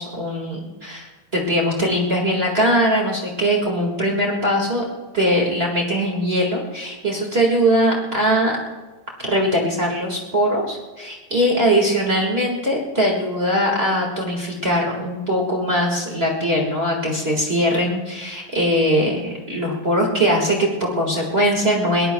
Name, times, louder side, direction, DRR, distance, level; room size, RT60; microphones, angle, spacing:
voice 1, 0.0-4.8 5.1-8.6 9.2-22.1, equal, 35° right, -1 dB, 1.0 m, -21 dB
23.0 x 18.5 x 2.3 m, 1.3 s
omnidirectional pair, 4.1 m